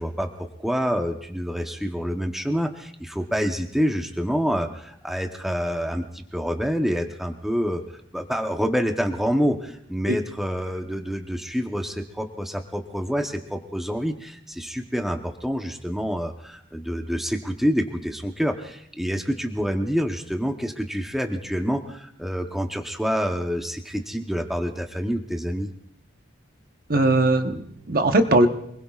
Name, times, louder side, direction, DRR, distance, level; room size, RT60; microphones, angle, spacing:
voice 1, 0.0-7.8 8.1-25.7, equal, ahead, 3 dB, 0.9 m, -27 dB
voice 2, 26.9-28.5, right 2 dB, 50° right, 6 dB, 1.1 m, -19 dB
27.0 x 20.5 x 2.4 m, 0.72 s
head